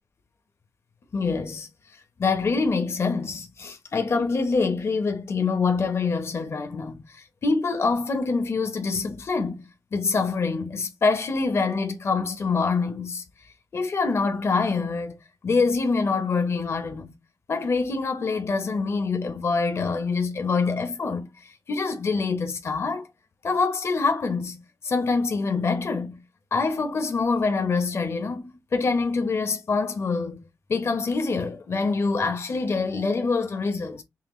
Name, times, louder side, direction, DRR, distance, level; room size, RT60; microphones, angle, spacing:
voice 1, 1.1-1.7 2.2-13.2 13.7-17.1 17.5-21.3 21.7-23.1 23.4-26.2 26.5-30.4 30.7-34.0, left 4 dB, 45° left, 0.9 m, -25 dB
5.7 x 2.2 x 3.1 m
wide cardioid pair, 115°, 6 cm